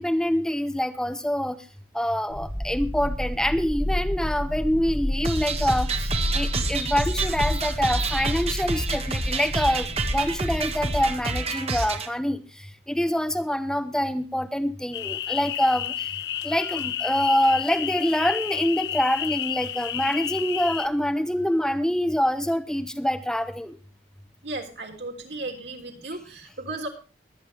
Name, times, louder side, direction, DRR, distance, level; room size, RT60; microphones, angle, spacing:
voice 1, 0.0-1.6 1.9-5.9 6.3-9.9 10.1-12.4 12.9-16.1 16.4-23.8, equal, 5° left, 8 dB, 0.9 m, -25 dB
sound 1, 2.3-11.2, left 1 dB, 20° left, 7.5 m, -30 dB
sound 2, 5.2-12.1, right 3 dB, 35° right, 1.6 m, -28 dB
sound 3, 14.9-20.9, left 11 dB, 70° left, 0.6 m, -31 dB
voice 2, 24.4-26.9, right 2 dB, 80° right, 3 dB, 3.5 m, -35 dB
22.0 x 9.3 x 3.3 m, 0.33 s
head